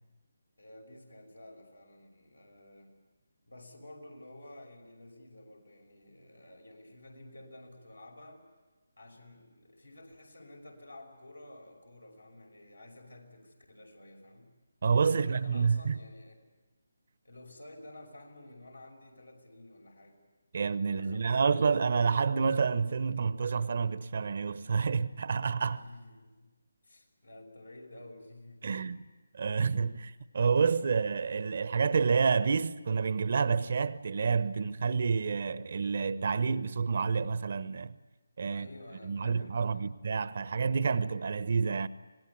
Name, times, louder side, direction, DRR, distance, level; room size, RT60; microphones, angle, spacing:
voice 1, 0.6-2.9 3.5-8.4 9.0-14.5 15.1-16.4 17.2-20.2 20.9-21.7 25.7-26.5 26.8-28.9 38.5-39.9, left 1 dB, 85° left, 5.6 m, -51 dB
voice 2, 14.8-16.0 20.5-25.8 28.6-29.0 29.3-38.0 38.4-38.7 39.0-41.9, right 5 dB, 50° right, 0.9 m, -29 dB
26.0 x 19.5 x 8.4 m
figure-of-eight pair, 150°, 0 cm